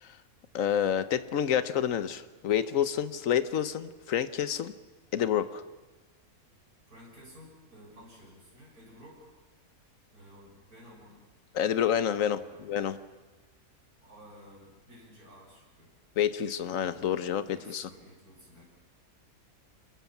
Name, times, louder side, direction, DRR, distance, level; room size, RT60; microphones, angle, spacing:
voice 1, 0.5-4.7 5.1-5.6 11.5-13.0 16.2-17.9, left 9 dB, 65° left, 13 dB, 1.4 m, -28 dB
voice 2, 6.9-9.3 10.1-11.2 11.9-12.6 14.0-15.9 17.5-18.6, equal, 85° right, -3 dB, 6.8 m, -53 dB
27.0 x 22.5 x 7.3 m, 1.2 s
omnidirectional pair, 1.5 m